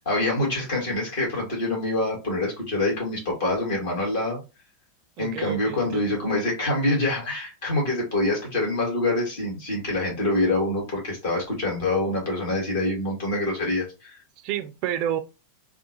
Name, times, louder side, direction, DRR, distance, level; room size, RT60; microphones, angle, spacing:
voice 1, 0.0-4.4 5.2-14.2, left 2 dB, 55° left, 1.9 m, -25 dB
voice 2, 5.2-6.2 14.4-15.2, right 11 dB, 40° right, 0.4 m, -30 dB
3.5 x 2.4 x 2.7 m
figure-of-eight pair, 90°, 0 cm